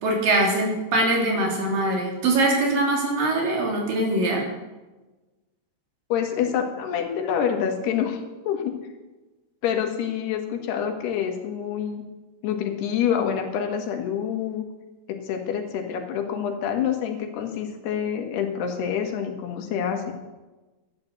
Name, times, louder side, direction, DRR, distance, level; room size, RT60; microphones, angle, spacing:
voice 1, 0.0-4.4, right 2 dB, 60° right, 0 dB, 4.8 m, -22 dB
voice 2, 6.1-8.8 9.6-12.0 12.4-14.6 15.1-20.1, left 8 dB, 90° left, 4 dB, 3.7 m, -27 dB
12.5 x 10.5 x 7.9 m, 1.1 s
omnidirectional pair, 4.6 m